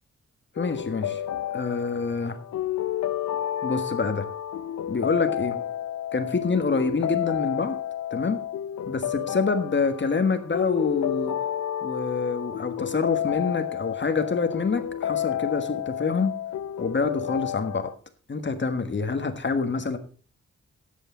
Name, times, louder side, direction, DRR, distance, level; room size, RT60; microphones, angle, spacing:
sound 1, 0.6-17.9, left 11 dB, 70° left, 0.5 m, -31 dB
voice 1, 0.6-1.2 1.5-2.4 3.6-4.3 4.9-5.6 6.1-7.8 8.1-8.4 8.9-11.3 11.8-16.3 16.8-17.9 18.3-20.0, left 4 dB, 40° left, 9 dB, 1.5 m, -26 dB
13.0 x 8.2 x 3.8 m, 0.40 s
wide cardioid pair, 100°, 29 cm